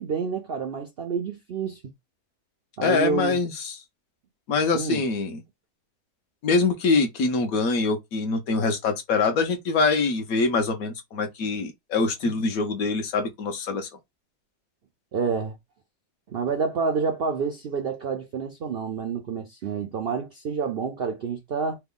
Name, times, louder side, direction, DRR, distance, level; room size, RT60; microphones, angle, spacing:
voice 1, 0.0-1.8 2.8-3.4 4.7-5.0 15.1-15.6 16.3-21.8, right 5 dB, 80° right, 0.5 m, -28 dB
voice 2, 2.8-3.7 4.5-5.4 6.4-13.9, left 4 dB, 65° left, 1.1 m, -24 dB
3.3 x 2.2 x 3.6 m
omnidirectional pair, 1.8 m